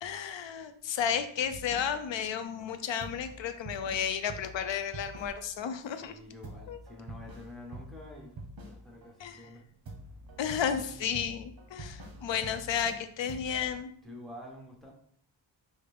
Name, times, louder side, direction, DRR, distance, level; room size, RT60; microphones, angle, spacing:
voice 1, 0.0-6.2 6.7-6.8 9.2-9.5 10.4-13.9, left 8 dB, 70° left, 10 dB, 0.5 m, -33 dB
sound 1, 1.5-2.3 2.6-2.7 3.0-5.7 6.0-6.1 6.4-9.1 9.4-13.0 13.3-13.7, right 1 dB, 50° right, 0.8 m, -46 dB
voice 2, 6.0-8.3 8.6-9.6 14.0-14.9, left 1 dB, ahead, 0 dB, 0.9 m, -48 dB
4.8 x 2.1 x 3.4 m, 0.64 s
wide cardioid pair, 75°, 46 cm